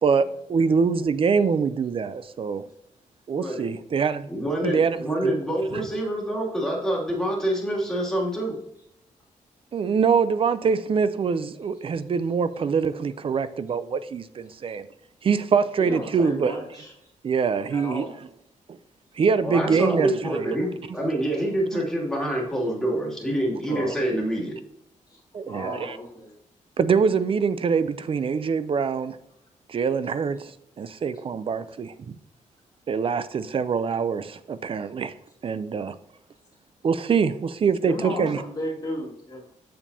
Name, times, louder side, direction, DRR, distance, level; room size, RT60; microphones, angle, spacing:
voice 1, 0.0-2.7 3.3-4.3 4.6-5.3 9.7-14.9 15.2-16.6 17.2-18.0 18.7-18.8 19.2-20.5 21.7-21.8 23.7-23.9 25.3-26.0 26.8-29.2 29.7-32.2 32.9-35.1 35.4-36.0 36.8-38.4, right 5 dB, 45° right, 0.4 m, -24 dB
voice 2, 4.3-8.6 19.4-24.5, right 1 dB, 5° left, 2.6 m, -26 dB
voice 3, 15.8-16.9 17.7-18.2 23.7-24.0 25.1-26.3 37.8-39.5, left 1 dB, 30° left, 2.2 m, -35 dB
7.3 x 7.3 x 2.8 m
wide cardioid pair, 125°, 13 cm